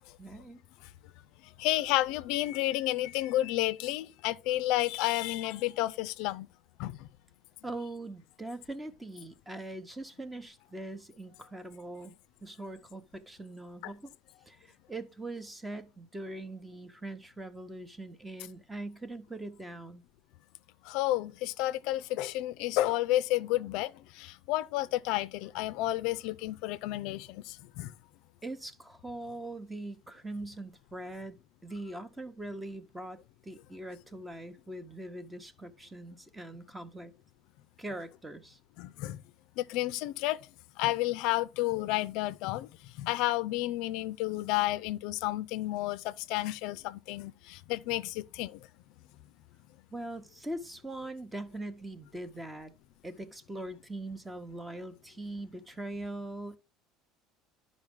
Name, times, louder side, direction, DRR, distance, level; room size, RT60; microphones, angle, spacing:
voice 1, 0.2-0.6 7.6-12.1 12.4-14.1 14.5-20.0 28.4-31.4 31.6-33.2 33.4-37.1 37.8-38.6 49.9-52.7 53.0-56.6, right 2 dB, 10° right, 0.9 m, -42 dB
voice 2, 1.6-6.5 6.8-7.1 13.8-13.9 20.8-27.9 38.8-39.2 39.6-40.4 40.8-42.7 43.0-48.6, left 16 dB, 70° left, 0.4 m, -31 dB
10.5 x 5.2 x 3.5 m
supercardioid pair, 120°, 0 cm